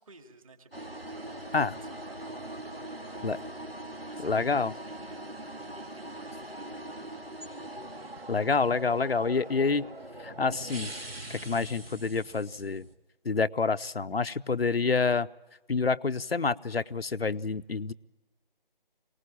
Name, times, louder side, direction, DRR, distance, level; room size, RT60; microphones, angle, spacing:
voice 1, 0.0-3.4 4.1-7.7, right 4 dB, 35° right, 6 dB, 2.2 m, -55 dB
sound 1, 0.7-13.0, right 1 dB, 85° right, 2.0 m, -42 dB
voice 2, 4.2-4.7 8.3-9.9 10.2-10.9 11.3-12.8 13.2-15.3 15.7-17.9, left 4 dB, 85° left, 12 dB, 0.7 m, -27 dB
23.0 x 19.0 x 8.5 m, 1.1 s
figure-of-eight pair, 155°, 29 cm